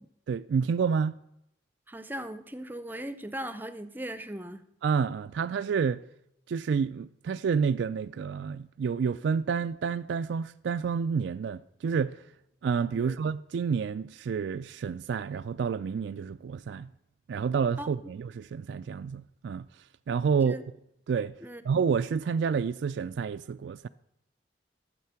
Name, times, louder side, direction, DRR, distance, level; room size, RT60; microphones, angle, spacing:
voice 1, 0.3-1.2 4.8-6.0 6.5-12.2 12.6-16.9 17.3-19.7 20.1-20.6 21.1-21.3 21.6-23.9, right 6 dB, 75° right, 0.3 m, -29 dB
voice 2, 1.9-4.6 12.9-13.2 17.8-17.9 20.4-20.6 21.4-21.6, right 1 dB, 10° right, 0.5 m, -38 dB
13.0 x 7.5 x 5.8 m
head